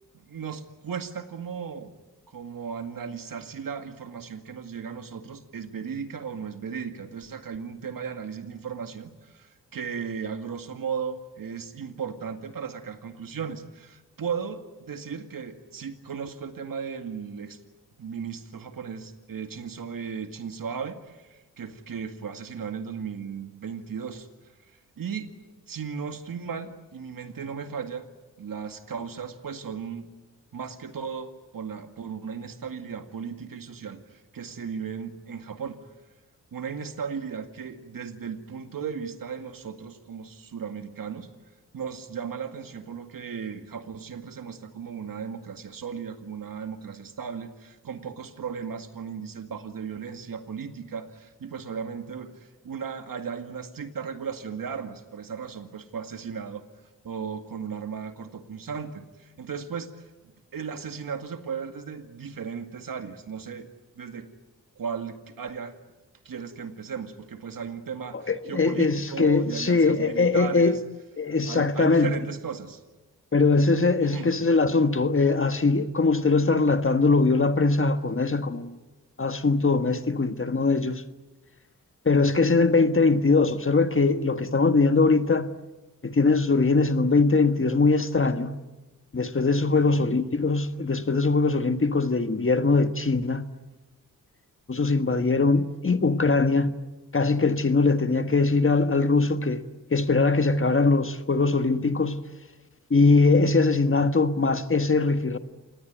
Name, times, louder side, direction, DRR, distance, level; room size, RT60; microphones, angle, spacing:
voice 1, 0.2-1.9 2.3-17.6 18.0-24.3 24.6-25.3 25.7-28.1 28.4-30.1 30.5-35.8 36.5-41.3 41.7-56.6 57.0-60.1 60.5-63.7 64.0-64.3 64.8-65.8 66.2-70.8 71.2-72.8 74.0-74.3 89.7-90.1, right 6 dB, 75° right, 2.1 m, -36 dB
voice 2, 68.3-70.8 71.2-72.1 73.3-78.8 79.2-81.0 82.0-85.5 86.0-88.5 89.1-93.4 94.7-96.8 97.1-99.6 99.9-102.2 102.9-105.4, left 3 dB, 40° left, 1.5 m, -21 dB
27.0 x 19.5 x 9.3 m
cardioid pair, 70°, 34 cm